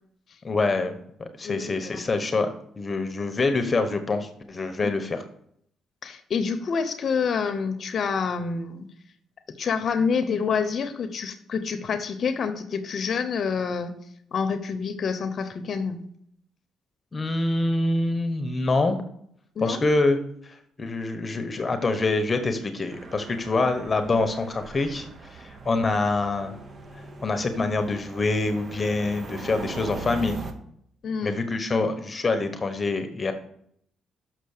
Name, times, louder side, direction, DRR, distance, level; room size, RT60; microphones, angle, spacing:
voice 1, 0.4-0.9 1.2-5.2 17.1-19.0 19.6-20.2 20.4-26.6 27.2-30.4 31.2-33.3, left 3 dB, 30° left, 8 dB, 1.0 m, -25 dB
voice 2, 1.4-2.0 4.8-4.9 6.0-8.9 9.6-13.9 14.3-16.0 19.6-19.8 31.0-31.4, left 5 dB, 55° left, 10 dB, 0.8 m, -27 dB
sound 1, 22.9-30.5, right 3 dB, 40° right, 1.1 m, -40 dB
6.7 x 6.3 x 6.6 m, 0.69 s
cardioid pair, 90°, 0 cm